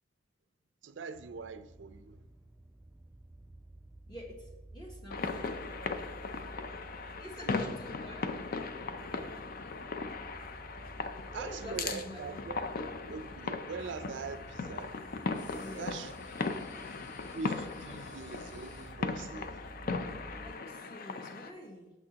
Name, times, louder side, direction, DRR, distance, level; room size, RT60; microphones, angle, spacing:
voice 1, 0.8-2.2 6.6-6.7 7.4-7.5 11.3-12.6 13.1-14.9 15.8-16.1 17.3-19.6, right 4 dB, 75° right, 0.4 m, -42 dB
sound 1, 1.1-20.5, right 1 dB, 10° right, 0.3 m, -52 dB
voice 2, 4.1-6.1 6.9-8.3 11.3-12.8 15.6-16.1 20.4-21.9, equal, 25° left, 0.9 m, -47 dB
sound 2, 5.1-21.5, left 4 dB, 50° left, 0.5 m, -38 dB
sound 3, 13.8-18.9, left 1 dB, 70° left, 1.5 m, -55 dB
8.8 x 6.4 x 2.9 m
head